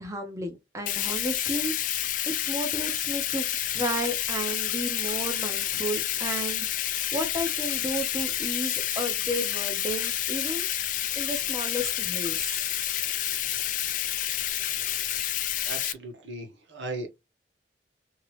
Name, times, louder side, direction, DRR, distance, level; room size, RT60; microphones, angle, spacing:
voice 1, 0.0-1.7 2.0-2.1 2.5-3.5 3.7-6.7 7.1-10.7 11.2-12.7, equal, 15° right, 0.7 m, -33 dB
Bathtub (filling or washing), 0.9-15.9, left 12 dB, 45° left, 0.3 m, -29 dB
voice 2, 15.6-17.1, right 2 dB, 85° right, 1.1 m, -38 dB
2.9 x 2.8 x 3.1 m
head